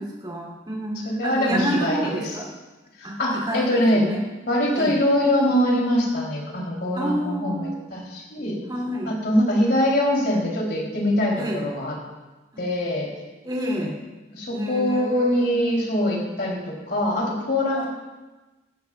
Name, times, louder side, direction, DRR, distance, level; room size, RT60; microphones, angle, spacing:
voice 1, 0.0-2.5 3.0-4.2 4.7-5.0 6.9-7.8 8.7-9.2 11.3-11.7 12.5-12.6 13.4-14.0 14.5-15.7 17.7-17.9, equal, 25° right, -2 dB, 3.1 m, -29 dB
voice 2, 1.0-2.2 3.0-4.0 4.5-8.6 9.1-11.9 12.6-13.1 14.3-17.9, left 1 dB, 60° left, -2 dB, 3.4 m, -23 dB
17.5 x 13.0 x 2.4 m, 1.2 s
head